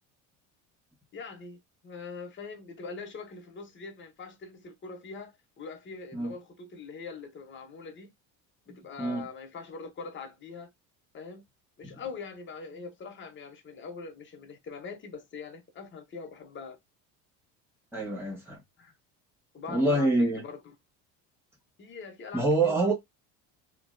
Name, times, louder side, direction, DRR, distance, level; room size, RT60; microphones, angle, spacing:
voice 1, 1.1-8.1 8.7-10.7 11.1-11.4 11.8-16.8 18.8-18.9 19.5-20.7 21.8-22.9, left 4 dB, 30° left, 0.9 m, -42 dB
voice 2, 17.9-18.6 19.7-20.4 22.3-22.9, right 2 dB, 5° right, 1.4 m, -26 dB
2.8 x 2.7 x 2.6 m
cardioid pair, 125°, 38 cm